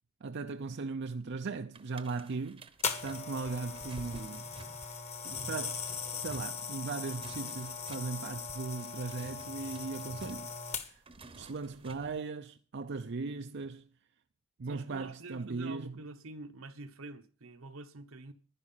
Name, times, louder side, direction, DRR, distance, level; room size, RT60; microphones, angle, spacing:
voice 1, 0.2-2.7 3.0-4.5 5.3-5.8 6.2-11.0 11.3-13.9 14.6-15.9, right 4 dB, 60° right, 0.5 m, -38 dB
sound 1, 1.7-12.2, right 2 dB, 25° right, 0.9 m, -51 dB
sound 2, 2.8-11.2 11.9-12.1, left 5 dB, 35° left, 1.3 m, -39 dB
voice 2, 14.7-18.3, right 2 dB, 80° right, 1.1 m, -47 dB
11.0 x 11.0 x 5.6 m
head